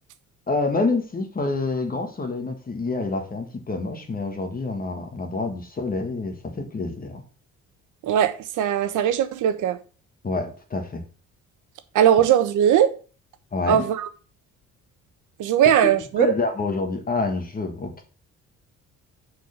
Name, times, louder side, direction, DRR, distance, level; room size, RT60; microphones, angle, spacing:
voice 1, 0.5-7.2 10.2-11.0 13.5-13.8 15.8-15.9 16.2-18.0, left 3 dB, 30° left, 1.6 m, -27 dB
voice 2, 8.0-9.8 11.9-12.9 13.7-14.1 15.4-16.3, right 10 dB, 75° right, 1.1 m, -19 dB
6.4 x 4.5 x 6.5 m
cardioid pair, 110°, 31 cm